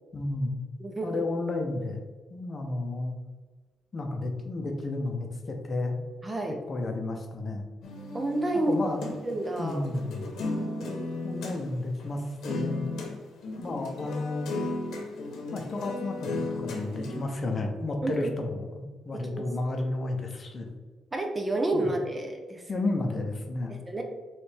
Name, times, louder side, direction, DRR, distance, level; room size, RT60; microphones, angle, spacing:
voice 1, 0.1-0.5 1.0-2.0 2.3-3.2 3.9-6.0 6.7-7.7 8.7-9.2 9.6-10.3 11.2-12.8 13.6-14.6 15.5-20.7 21.7-21.9 22.7-23.8, left 2 dB, 35° left, 3 dB, 0.7 m, -32 dB
voice 2, 0.8-1.2 6.2-6.6 8.1-8.8 9.2-9.9 10.5-11.2 18.0-18.3 19.2-19.5 21.1-22.6 23.7-24.0, right 1 dB, 20° right, 3 dB, 0.5 m, -30 dB
sound 1, 7.8-11.6 12.0-12.1 12.4-13.1 13.4-17.2, left 2 dB, 75° left, 0.9 m, -35 dB
4.5 x 3.2 x 3.3 m, 1.3 s
cardioid pair, 130°, 0 cm